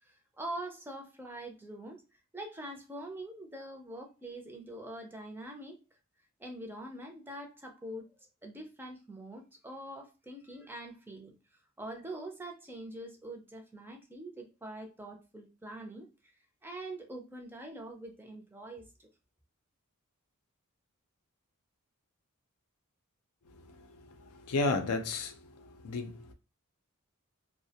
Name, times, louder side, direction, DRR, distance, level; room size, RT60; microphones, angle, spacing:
voice 1, 0.0-5.8 6.4-8.0 8.4-11.3 11.8-16.3 16.6-19.1, right 1 dB, 10° right, 0.4 m, -44 dB
voice 2, 24.5-25.3 25.8-26.3, left 3 dB, 85° left, 0.5 m, -31 dB
2.2 x 2.1 x 2.7 m
head